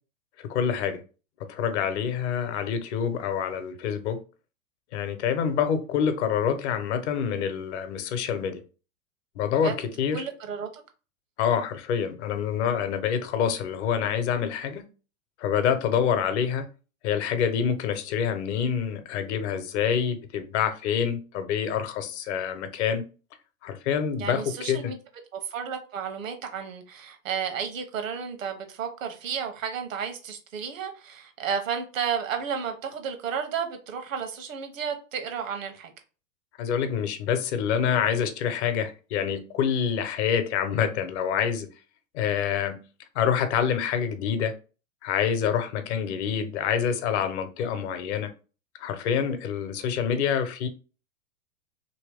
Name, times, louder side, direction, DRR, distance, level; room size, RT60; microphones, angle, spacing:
voice 1, 0.4-1.0 1.4-4.2 4.9-8.6 9.4-10.2 11.4-14.8 15.4-16.7 17.0-23.0 23.6-24.9 36.6-41.7 42.1-42.8 43.1-44.5 45.0-48.3 48.8-50.7, left 8 dB, 55° left, 0.9 m, -26 dB
voice 2, 10.1-10.8 24.2-25.0 25.3-35.9, right 7 dB, 75° right, 1.0 m, -32 dB
3.0 x 2.9 x 3.4 m
hypercardioid pair, 115°, 40 cm